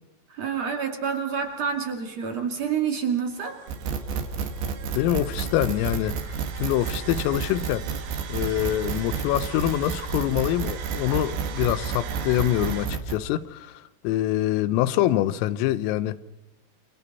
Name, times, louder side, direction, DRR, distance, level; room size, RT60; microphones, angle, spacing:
voice 1, 0.3-3.6, right 7 dB, 45° right, 2.4 m, -28 dB
sound 1, 1.4-12.9, right 8 dB, 90° right, 1.7 m, -42 dB
sound 2, 3.7-13.2, right 6 dB, 65° right, 3.8 m, -30 dB
voice 2, 5.0-7.9 8.3-16.2, left 13 dB, 85° left, 3.6 m, -25 dB
28.5 x 28.0 x 4.2 m
omnidirectional pair, 5.9 m